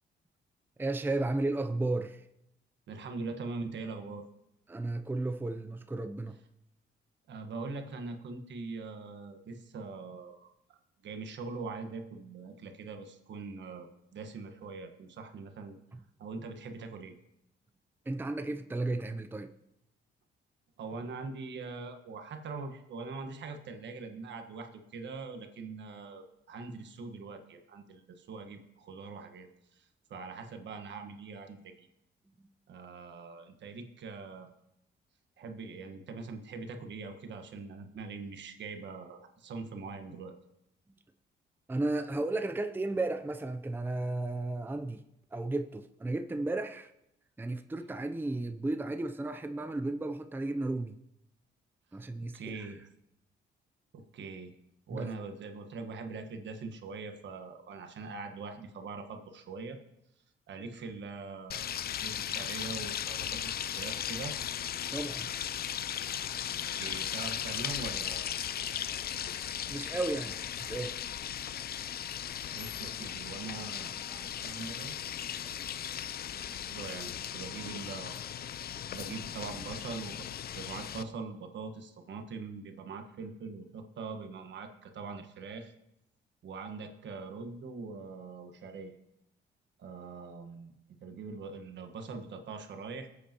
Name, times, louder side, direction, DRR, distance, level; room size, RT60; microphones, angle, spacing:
voice 1, 0.8-2.2 4.7-6.4 15.9-16.0 18.1-19.5 32.4-32.5 40.9-41.0 41.7-45.0 45.3-46.9 47.4-51.0 51.9-52.6 54.9-55.1 64.9-65.3 69.7-71.0, right 2 dB, 10° right, 7 dB, 0.6 m, -34 dB
voice 2, 2.9-4.2 7.3-15.8 16.2-17.1 20.8-31.9 32.7-34.5 35.4-40.3 52.3-52.8 53.9-54.5 54.9-59.8 60.5-64.3 66.8-68.3 72.5-75.0 75.4-76.1 76.7-78.2 78.9-80.3 80.5-85.7 86.4-89.0 89.8-90.7 91.0-93.1, right 4 dB, 65° right, 5 dB, 1.5 m, -42 dB
sound 1, 61.5-81.0, left 9 dB, 50° left, 0.5 m, -37 dB
20.5 x 8.5 x 3.0 m, 0.84 s
cardioid pair, 90°, 20 cm